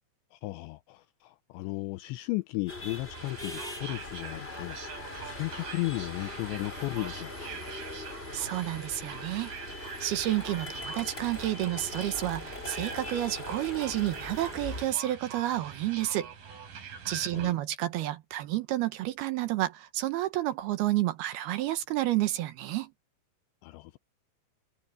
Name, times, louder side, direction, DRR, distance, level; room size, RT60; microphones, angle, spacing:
voice 1, 0.3-7.6 17.3-17.6 23.6-24.0, left 22 dB, 80° left, 2.6 m, -35 dB
sound 1, 2.7-14.8, left 2 dB, 10° left, 5.0 m, -41 dB
sound 2, 3.1-17.5, right 6 dB, 50° right, 5.7 m, -44 dB
voice 2, 8.3-9.5 10.0-16.3 16.8-22.9, right 15 dB, 70° right, 2.6 m, -30 dB
omnidirectional pair, 5.6 m